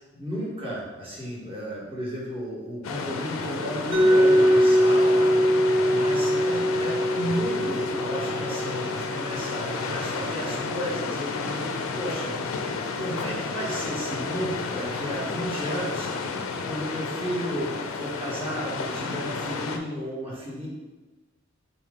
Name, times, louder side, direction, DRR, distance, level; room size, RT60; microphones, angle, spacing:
voice 1, 0.1-12.7 12.9-16.1 16.7-20.7, equal, 30° right, -6 dB, 1.3 m, -33 dB
sound 1, 2.8-19.8, left 4 dB, 75° left, 0.4 m, -31 dB
Mallet percussion, 3.9-9.8, equal, 65° right, 0.7 m, -22 dB
4.1 x 2.9 x 3.7 m, 1.2 s
head